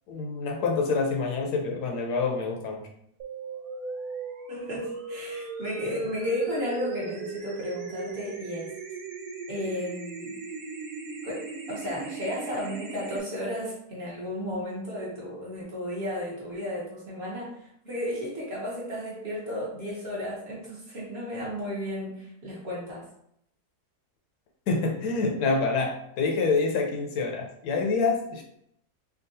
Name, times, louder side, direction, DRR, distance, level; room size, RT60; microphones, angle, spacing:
voice 1, 0.1-2.9 24.7-28.4, left 4 dB, 80° left, 1 dB, 1.2 m, -27 dB
sound 1, 3.2-13.2, right 3 dB, 80° right, 1.1 m, -38 dB
voice 2, 4.5-8.7 9.5-10.4 11.2-23.0, equal, 45° right, -6 dB, 1.1 m, -33 dB
3.6 x 2.3 x 2.6 m, 0.74 s
omnidirectional pair, 1.7 m